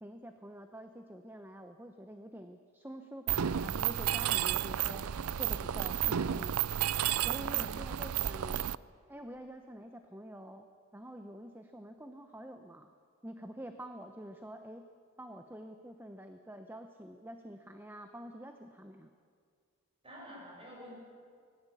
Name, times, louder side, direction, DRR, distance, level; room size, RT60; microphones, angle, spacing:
voice 1, 0.0-5.1 5.4-6.6 7.2-8.6 9.1-10.7 10.9-12.9 13.2-14.8 15.2-19.1, equal, 10° right, 6 dB, 0.9 m, -47 dB
Mechanisms, 3.3-8.7, right 10 dB, 90° right, 0.5 m, -32 dB
voice 2, 7.5-8.0 20.0-20.9, equal, 25° right, -2 dB, 7.4 m, -49 dB
26.0 x 19.5 x 8.5 m, 2.1 s
head